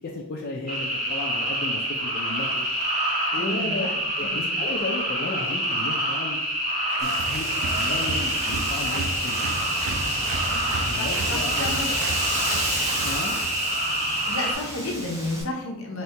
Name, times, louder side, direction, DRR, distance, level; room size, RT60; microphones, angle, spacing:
voice 1, 0.1-2.6 3.3-3.9 4.2-6.4 7.0-7.5 7.7-9.6 10.8-11.9 13.0-13.4, left 2 dB, 45° left, -2 dB, 0.4 m, -34 dB
sound 1, 0.7-14.5, right 1 dB, 30° right, 1.4 m, -27 dB
voice 2, 3.3-3.9 4.2-4.5 8.9-9.2 10.5-10.6 11.0-12.0 14.3-16.0, left 2 dB, 65° left, 1 dB, 0.8 m, -32 dB
Applause, 6.9-13.6, right 3 dB, 75° right, 0.4 m, -34 dB
Wind, 7.0-15.4, right 1 dB, 15° right, 0.8 m, -32 dB
4.3 x 2.7 x 3.3 m, 0.91 s
head